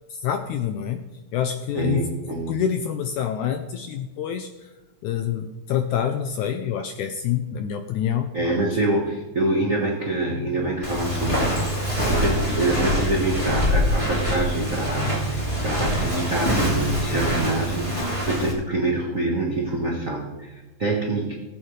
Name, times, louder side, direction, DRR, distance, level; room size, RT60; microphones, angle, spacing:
voice 1, 0.1-1.0 1.3-4.7 5.0-8.8, left 8 dB, 85° left, 7 dB, 1.8 m, -27 dB
voice 2, 1.7-2.6 8.3-21.4, right 2 dB, 75° right, -1 dB, 0.7 m, -26 dB
Walk footsteps, 10.8-18.5, equal, 10° left, 2.0 m, -24 dB
18.0 x 8.6 x 3.2 m, 1.2 s
omnidirectional pair, 4.1 m